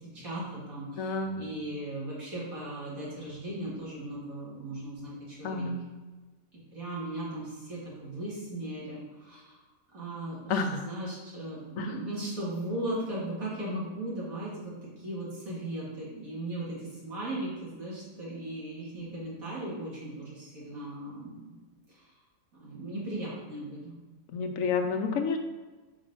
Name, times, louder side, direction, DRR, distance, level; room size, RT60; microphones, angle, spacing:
voice 1, 0.1-5.7 6.5-9.6 9.9-21.5 21.9-22.1 22.5-23.9, right 1 dB, 85° right, -7 dB, 2.6 m, -37 dB
voice 2, 1.0-1.4 5.4-5.8 10.5-10.8 11.8-11.9 24.3-25.4, left 4 dB, 75° left, 4 dB, 1.1 m, -29 dB
4.9 x 4.1 x 5.3 m, 1.3 s
omnidirectional pair, 1.4 m